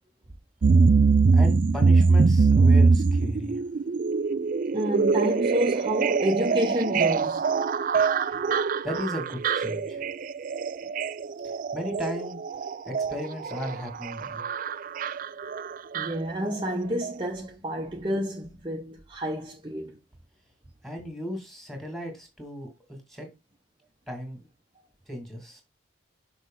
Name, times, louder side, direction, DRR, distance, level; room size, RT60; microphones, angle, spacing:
sound 1, 0.6-16.7 17.0-17.1, right 4 dB, 40° right, 0.3 m, -23 dB
voice 1, 1.3-3.6 8.8-10.1 11.4-12.4 12.9-14.4 20.8-23.3 24.1-24.5 25.1-25.6, left 1 dB, ahead, 2.1 m, -36 dB
voice 2, 4.7-7.4 15.9-20.0, equal, 25° right, 0.7 m, -29 dB
6.2 x 4.7 x 3.8 m
head